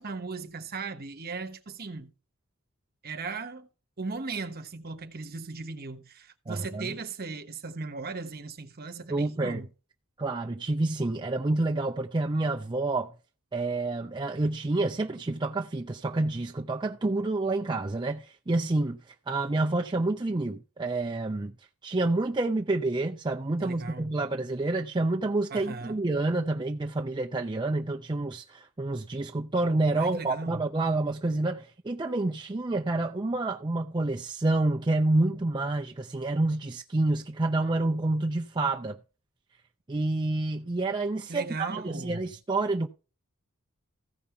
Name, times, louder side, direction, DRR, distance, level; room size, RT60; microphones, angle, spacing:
voice 1, 0.0-2.1 3.0-3.7 4.0-9.7 23.6-24.1 25.5-26.0 29.9-30.6 41.3-42.3, right 4 dB, 45° right, 1.1 m, -37 dB
voice 2, 6.5-6.9 9.1-9.6 10.2-13.1 13.5-21.5 21.8-39.0 39.9-42.9, right 2 dB, 20° right, 0.5 m, -28 dB
15.0 x 5.5 x 4.4 m
head